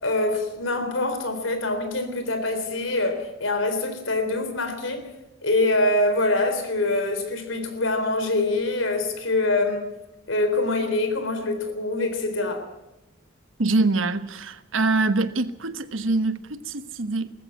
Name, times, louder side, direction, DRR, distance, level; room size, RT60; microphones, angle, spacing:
voice 1, 0.0-5.0 5.4-9.9 10.3-12.7, left 2 dB, 85° left, 3.7 m, -24 dB
voice 2, 13.6-17.3, right 3 dB, 90° right, 1.2 m, -24 dB
19.5 x 14.5 x 9.5 m
head